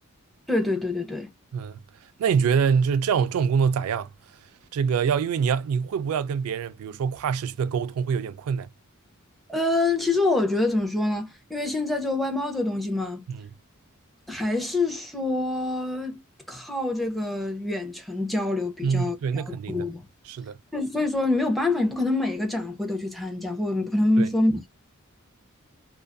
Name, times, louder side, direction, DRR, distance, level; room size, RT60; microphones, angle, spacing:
voice 1, 0.5-1.3 9.5-13.2 14.3-16.2 16.5-20.1 20.7-24.7, left 2 dB, ahead, 0.6 m, -26 dB
voice 2, 2.2-4.1 4.7-8.7 13.4-13.5 18.8-19.8 20.3-20.6 24.2-24.3, right 6 dB, 80° right, 0.3 m, -25 dB
2.5 x 2.4 x 2.2 m
head